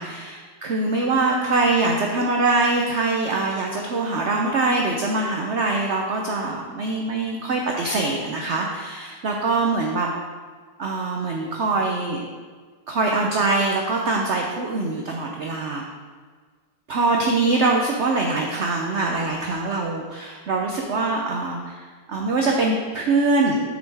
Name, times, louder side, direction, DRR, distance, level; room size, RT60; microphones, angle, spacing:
voice 1, 0.0-10.1 10.8-12.2 12.9-15.8 16.9-21.8 22.1-23.6, right 3 dB, 65° right, 0 dB, 0.7 m, -23 dB
8.0 x 6.2 x 3.4 m, 1.5 s
omnidirectional pair, 2.0 m